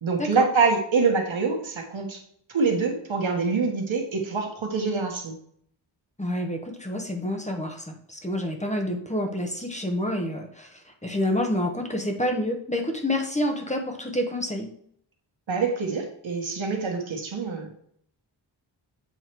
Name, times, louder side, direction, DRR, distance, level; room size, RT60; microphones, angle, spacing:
voice 1, 0.0-2.2 2.5-5.4 15.5-17.7, right 4 dB, 85° right, 2 dB, 1.4 m, -25 dB
voice 2, 6.2-10.7 11.0-14.7, left 1 dB, 15° left, 3 dB, 1.1 m, -28 dB
8.1 x 3.2 x 4.6 m, 0.65 s
wide cardioid pair, 70°, 46 cm